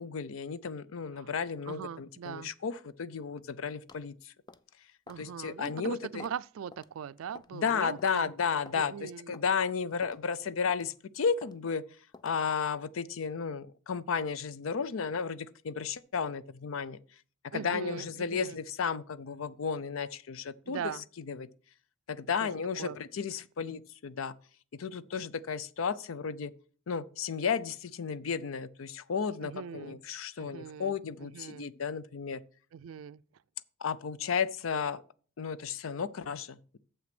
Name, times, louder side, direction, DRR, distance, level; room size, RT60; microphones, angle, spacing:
voice 1, 0.0-4.3 5.2-6.3 7.5-11.8 12.2-17.0 17.5-21.5 22.1-24.3 24.7-26.5 26.9-32.4 33.8-35.0 35.4-36.8, left 6 dB, 75° left, 0.5 m, -33 dB
voice 2, 1.7-2.5 5.1-8.3 8.8-9.3 17.5-18.6 20.7-21.0 22.4-23.0 29.4-30.0 30.4-30.9 31.2-31.7 32.7-33.2, right 8 dB, 85° right, 0.4 m, -41 dB
sound 1, 3.9-4.1 4.5-4.7 5.1-5.3 5.6-5.7 6.2-6.4 6.7-6.9 7.3-7.6 8.0-8.1 8.6-8.8 9.3-9.5 10.0-10.2 10.7-10.9 11.4-11.6 12.1-12.4, left 4 dB, 20° left, 0.4 m, -51 dB
7.2 x 5.9 x 5.9 m
head